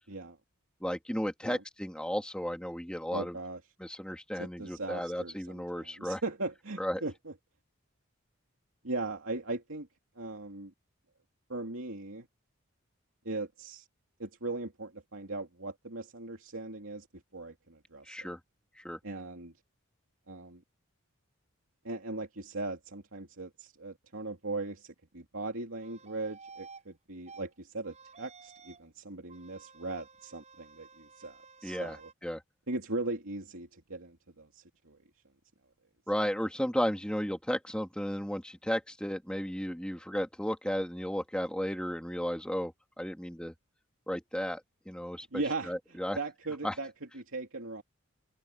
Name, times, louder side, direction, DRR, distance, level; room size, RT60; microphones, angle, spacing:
voice 1, 0.8-3.4 3.8-6.2 6.8-7.0 18.1-18.4 18.8-19.0 31.6-32.4 36.1-43.5 44.1-44.6 44.9-46.2 46.6-46.7, equal, 5° left, 2.7 m, -34 dB
voice 2, 3.1-3.6 4.3-7.3 8.8-9.9 10.2-10.7 11.5-12.3 13.2-13.9 14.2-17.1 17.3-18.3 19.0-19.5 20.3-20.6 21.8-32.1 32.7-35.0 45.2-47.8, right 2 dB, 75° right, 2.7 m, -39 dB
sound 1, 25.8-26.8 27.3-27.4 27.8-28.9 29.3-32.1, right 5 dB, 30° right, 7.4 m, -53 dB
head